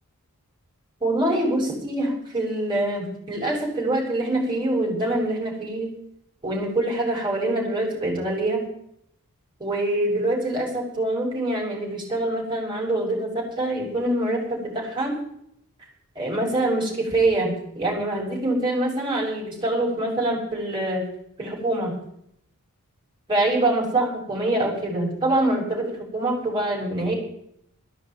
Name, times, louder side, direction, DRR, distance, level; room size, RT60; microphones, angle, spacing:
voice 1, 1.0-5.9 6.4-8.6 9.6-15.2 16.2-21.0 21.4-21.9 23.3-27.1, right 1 dB, 20° right, -2 dB, 7.2 m, -25 dB
15.0 x 10.5 x 9.3 m, 0.71 s
head